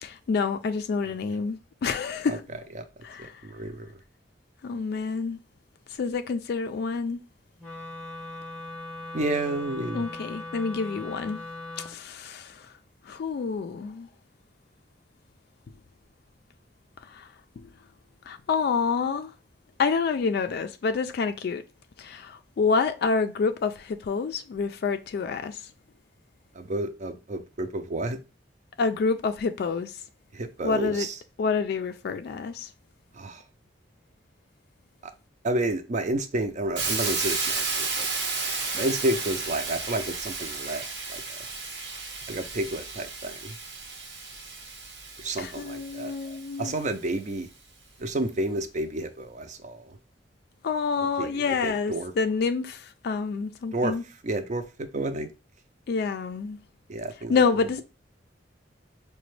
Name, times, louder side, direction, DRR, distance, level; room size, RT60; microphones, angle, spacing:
voice 1, 0.0-2.4 3.0-3.3 4.6-5.4 6.0-7.2 9.9-11.4 11.8-12.6 13.1-14.1 17.1-17.3 17.6-17.7 18.3-19.3 19.8-21.6 22.0-25.6 28.8-30.0 30.6-31.1 31.4-32.7 45.4-46.7 50.6-54.0 55.9-56.6 57.3-57.8, left 5 dB, 60° left, 0.3 m, -28 dB
voice 2, 3.2-3.9 9.1-10.0 26.6-28.2 30.3-31.2 33.2-33.4 35.4-38.1 38.7-40.8 41.1-41.2 42.3-43.5 45.2-46.1 46.6-47.5 48.0-50.0 51.2-52.1 53.7-53.9 54.2-55.3 56.9-57.3, right 1 dB, 40° right, 0.5 m, -30 dB
Wind instrument woodwind instrument, 7.6-12.0, left 2 dB, 5° left, 0.8 m, -39 dB
Hiss, 36.8-46.6, right 4 dB, 85° right, 1.0 m, -33 dB
4.9 x 2.2 x 3.1 m
head